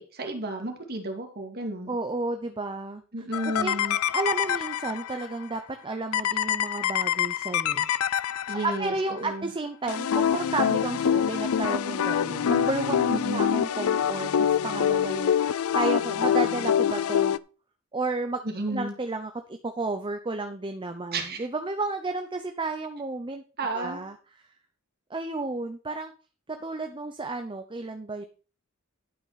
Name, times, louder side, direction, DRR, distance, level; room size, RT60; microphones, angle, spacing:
voice 1, 0.0-1.9 3.1-4.0 8.5-9.5 13.1-13.6 18.4-18.9 21.1-21.5 23.6-24.0, right 2 dB, 50° right, 3 dB, 2.5 m, -32 dB
voice 2, 1.9-3.0 3.4-3.7 4.1-7.9 8.6-17.4 17.9-18.4 18.7-23.4 23.7-24.2 25.1-26.1 26.6-28.2, right 3 dB, 25° right, 6 dB, 0.8 m, -32 dB
sound 1, 3.3-5.3 6.1-9.0 9.9-17.4, left 9 dB, 75° left, 0.4 m, -25 dB
11.5 x 5.9 x 5.8 m, 0.37 s
head